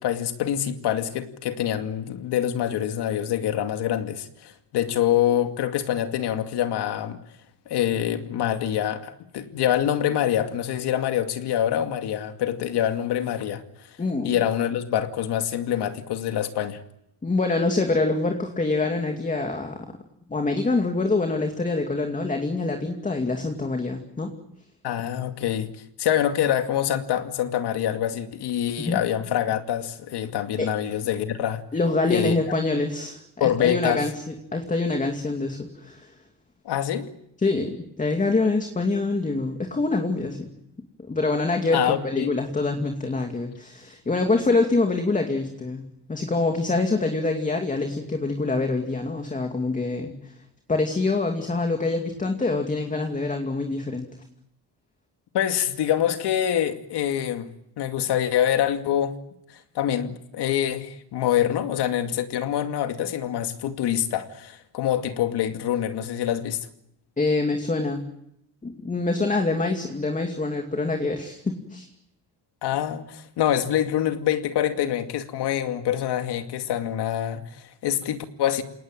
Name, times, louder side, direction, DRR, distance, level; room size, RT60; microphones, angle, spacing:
voice 1, 0.0-7.2 7.7-13.6 14.2-16.8 24.8-25.7 26.0-31.6 32.1-32.3 33.4-34.0 36.6-37.1 41.7-42.3 55.3-57.5 57.8-59.2 59.5-66.7 72.6-78.6, left 10 dB, 65° left, 2.4 m, -25 dB
voice 2, 14.0-14.3 17.2-19.8 20.3-24.3 28.8-29.0 30.6-30.7 31.7-36.1 37.4-40.5 41.1-45.8 46.1-50.3 50.7-54.1 67.2-68.0 68.6-71.9, left 3 dB, 20° left, 2.5 m, -25 dB
28.5 x 18.5 x 9.1 m
cardioid pair, 140°, 42 cm